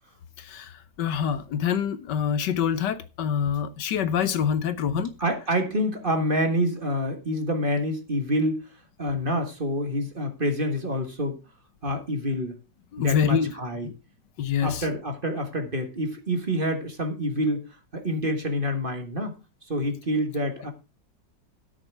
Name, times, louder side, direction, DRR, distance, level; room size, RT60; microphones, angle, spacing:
voice 1, 1.0-5.1 12.9-13.5 13.8-13.9 14.4-14.9, left 8 dB, 75° left, 1.5 m, -25 dB
voice 2, 4.9-8.6 9.0-11.4 11.8-12.6 13.0-13.9 14.6-17.6 17.9-19.3 19.7-20.7, equal, 30° right, 1.6 m, -27 dB
13.0 x 6.7 x 4.6 m
omnidirectional pair, 1.9 m